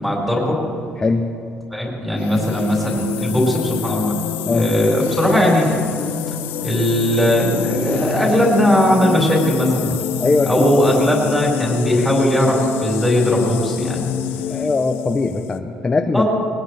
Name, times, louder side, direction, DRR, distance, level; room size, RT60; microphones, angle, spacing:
voice 1, 0.0-0.6 1.7-4.2 4.5-5.8 6.6-9.9 10.4-14.1 16.1-16.2, equal, 5° right, -3 dB, 4.9 m, -18 dB
sound 1, 2.2-15.6, left 9 dB, 80° left, 0.7 m, -27 dB
voice 2, 9.9-10.6 14.5-16.2, left 3 dB, 20° left, 4 dB, 0.6 m, -20 dB
21.0 x 20.5 x 3.4 m, 2.4 s
cardioid pair, 150°, 4 cm